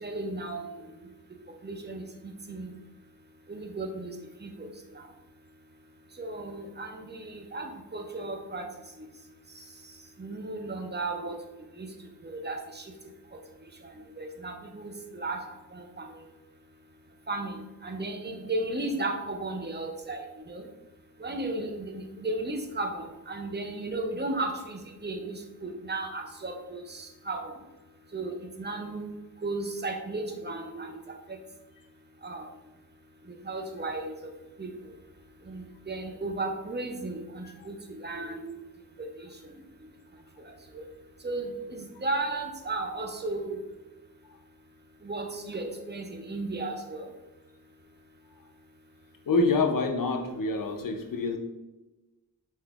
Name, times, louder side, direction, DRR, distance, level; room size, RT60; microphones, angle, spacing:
voice 1, 0.0-1.0 1.6-2.7 3.5-4.1 4.4-4.7 6.2-8.7 10.2-11.4 11.8-11.9 12.2-12.8 14.2-15.4 15.7-16.1 17.3-20.6 21.2-27.5 28.1-29.1 29.4-31.0 32.2-32.5 33.4-34.3 34.6-34.7 35.5-38.5 39.0-39.1 40.7-40.8 41.2-43.6 45.0-47.1, right 2 dB, 25° right, 4 dB, 0.4 m, -35 dB
voice 2, 49.3-51.4, left 3 dB, 55° left, 3 dB, 0.5 m, -26 dB
3.4 x 2.8 x 2.3 m, 1.1 s
cardioid pair, 45°, 40 cm